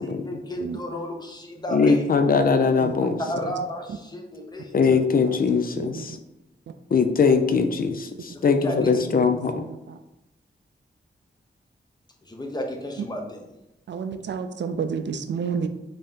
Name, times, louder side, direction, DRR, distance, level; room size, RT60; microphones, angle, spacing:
voice 1, 0.0-2.1 3.2-4.8 8.4-8.9 12.2-13.4, equal, 20° left, 1 dB, 0.8 m, -32 dB
voice 2, 1.7-3.2 4.7-6.2 6.9-9.5, left 5 dB, 50° left, 7 dB, 0.4 m, -21 dB
voice 3, 2.8-3.5 4.9-6.2 8.9-10.0 13.0-13.1 13.9-15.7, right 6 dB, 75° right, 8 dB, 0.4 m, -32 dB
5.2 x 2.8 x 3.6 m, 0.90 s
wide cardioid pair, 115°, 19 cm